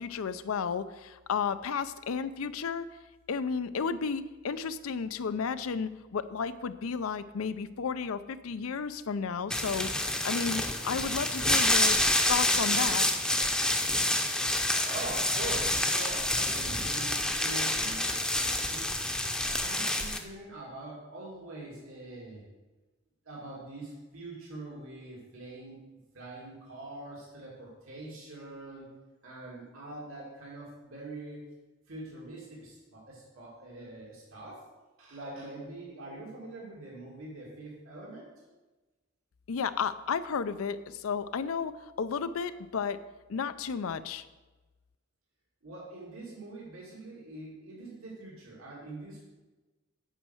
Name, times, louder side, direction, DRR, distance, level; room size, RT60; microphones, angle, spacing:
voice 1, 0.0-2.9 3.3-12.0 12.3-13.0 39.5-41.7 42.0-43.0 43.3-44.2, left 6 dB, 90° left, 13 dB, 0.5 m, -33 dB
sound 1, 9.5-20.2, left 1 dB, 5° left, 0.6 m, -28 dB
voice 2, 14.4-19.0 19.6-22.4 23.2-25.8 26.1-28.9 29.2-31.4 31.9-34.6 35.0-38.3 45.6-49.2, right 2 dB, 85° right, -5 dB, 2.5 m, -44 dB
9.0 x 5.5 x 6.4 m, 1.2 s
head